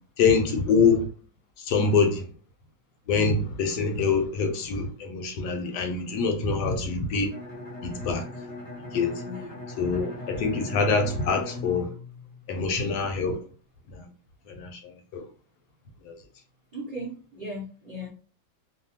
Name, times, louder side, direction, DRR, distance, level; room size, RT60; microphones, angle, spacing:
voice 1, 0.2-1.1 1.6-2.2 3.1-7.3 7.8-8.2 8.9-9.2 9.8-11.9 12.5-13.4 13.9-14.0 14.5-14.8 15.1-15.2 16.0-16.2, left 4 dB, 75° left, 1.1 m, -25 dB
Bowed string instrument, 7.3-13.0, left 2 dB, 45° left, 0.9 m, -39 dB
voice 2, 9.2-9.5 16.7-18.1, equal, 55° right, 0.4 m, -37 dB
2.7 x 2.3 x 2.8 m
omnidirectional pair, 1.9 m